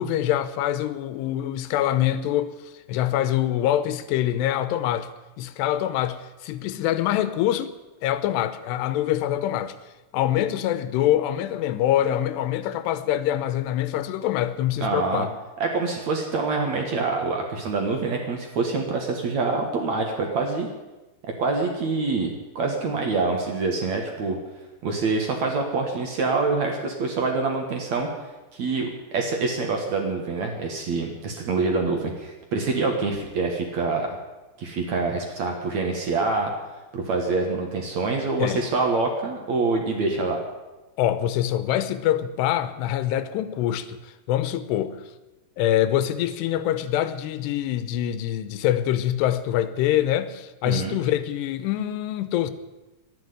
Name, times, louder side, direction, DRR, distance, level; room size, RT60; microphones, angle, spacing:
voice 1, 0.0-5.1 5.4-7.8 8.0-9.7 10.1-15.3 38.4-38.7 41.0-45.0 45.6-52.5, left 12 dB, 85° left, 2.9 m, -25 dB
voice 2, 14.8-15.3 15.6-20.7 21.2-24.4 24.8-28.1 28.5-34.2 34.6-36.5 36.9-40.4 50.7-51.0, right 3 dB, 55° right, 2.3 m, -26 dB
12.0 x 10.5 x 9.5 m
omnidirectional pair, 4.8 m